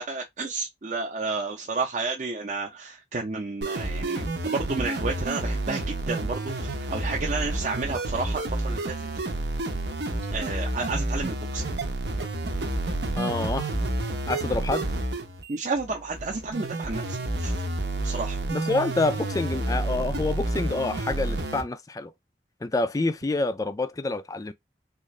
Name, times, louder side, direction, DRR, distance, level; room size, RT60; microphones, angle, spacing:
voice 1, 0.0-9.1 10.3-11.6 15.5-17.6 18.0-18.4, right 3 dB, 40° right, 0.6 m, -31 dB
sound 1, 3.6-21.6, right 2 dB, 80° right, 0.8 m, -30 dB
voice 2, 13.2-13.7 14.3-14.9 18.5-22.1 22.6-24.5, left 2 dB, 20° left, 0.3 m, -27 dB
3.7 x 2.4 x 3.1 m
head